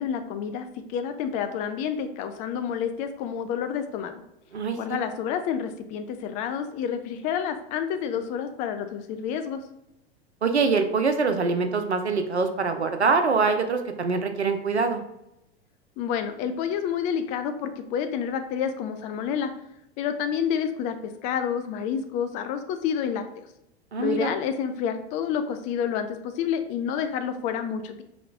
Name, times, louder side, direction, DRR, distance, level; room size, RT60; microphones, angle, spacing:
voice 1, 0.0-4.2 4.8-9.6 16.0-19.5 20.0-23.2 24.0-28.0, left 8 dB, 25° left, 8 dB, 0.3 m, -29 dB
voice 2, 4.5-5.0 10.4-15.0 23.9-24.3, right 4 dB, 90° right, 7 dB, 0.5 m, -24 dB
4.8 x 2.3 x 3.3 m, 0.84 s
figure-of-eight pair, 90°, 32 cm